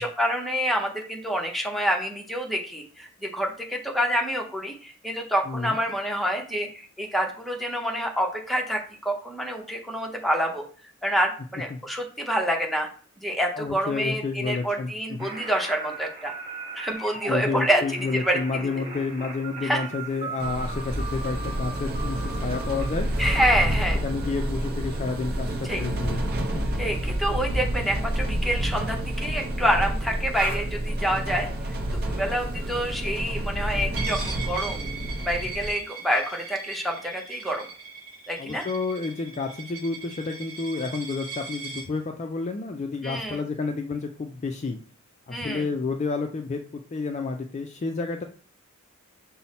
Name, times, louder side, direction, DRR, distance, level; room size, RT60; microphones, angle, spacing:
voice 1, 0.0-10.6 11.0-12.9 13.2-16.3 16.7-17.8 18.1-18.4 19.6-19.8 23.2-24.0 25.7-25.8 26.8-31.5 31.9-34.8 35.2-37.7 38.3-38.6 43.0-43.4 45.3-45.6, equal, ahead, 1 dB, 0.7 m, -27 dB
voice 2, 5.5-5.8 11.7-11.8 13.5-15.3 17.3-23.1 24.0-26.2 38.4-44.8 45.3-48.2, left 4 dB, 30° left, 5 dB, 0.3 m, -30 dB
sound 1, 15.2-23.6, right 3 dB, 30° right, 1.5 m, -38 dB
sound 2, 20.4-35.7, right 1 dB, 45° right, 0.6 m, -29 dB
Coin (dropping), 34.0-41.9, right 5 dB, 70° right, 1.0 m, -39 dB
5.5 x 2.0 x 4.1 m, 0.43 s
head